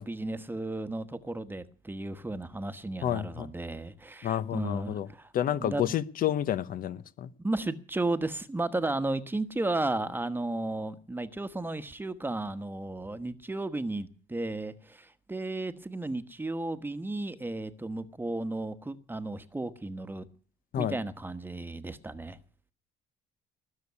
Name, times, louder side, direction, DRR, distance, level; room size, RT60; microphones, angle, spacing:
voice 1, 0.0-5.9 7.4-20.2 20.8-22.4, right 2 dB, 10° right, 1.2 m, -34 dB
voice 2, 3.0-3.5 4.2-5.1 5.3-7.3 20.7-21.0, left 11 dB, 60° left, 0.9 m, -30 dB
20.0 x 6.9 x 9.6 m
cardioid pair, 110°, 17 cm